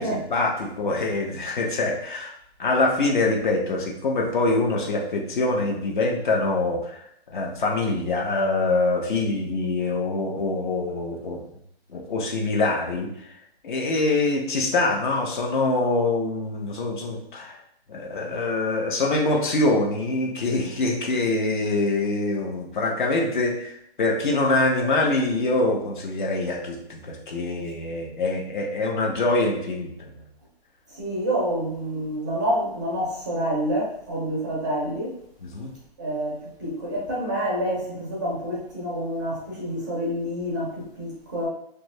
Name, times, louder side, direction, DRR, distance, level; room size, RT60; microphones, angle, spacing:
voice 1, 0.0-2.3 2.6-7.0 7.3-11.4 11.9-13.1 13.6-17.6 17.9-30.1 35.4-35.7, left 2 dB, 50° left, 0 dB, 0.7 m, -24 dB
voice 2, 31.0-35.1 36.0-41.5, equal, 20° right, -6 dB, 0.5 m, -28 dB
2.7 x 2.4 x 3.1 m, 0.72 s
hypercardioid pair, 160°, 31 cm